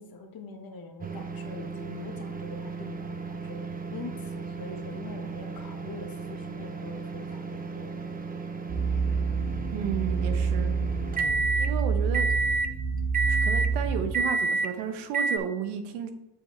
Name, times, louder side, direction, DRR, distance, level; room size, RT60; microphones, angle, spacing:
voice 1, 0.0-8.1, left 3 dB, 45° left, 4 dB, 1.5 m, -44 dB
sound 1, 1.0-11.7 12.1-12.7 13.1-13.7 14.1-14.7 15.1-15.4, right 3 dB, 20° right, 0.6 m, -32 dB
sound 2, 8.7-14.2, right 5 dB, 55° right, 2.7 m, -28 dB
voice 2, 9.7-10.8 11.5-12.3 13.3-16.1, right 8 dB, 90° right, 7 dB, 1.0 m, -33 dB
7.6 x 5.7 x 3.2 m, 0.93 s
supercardioid pair, 85°, 49 cm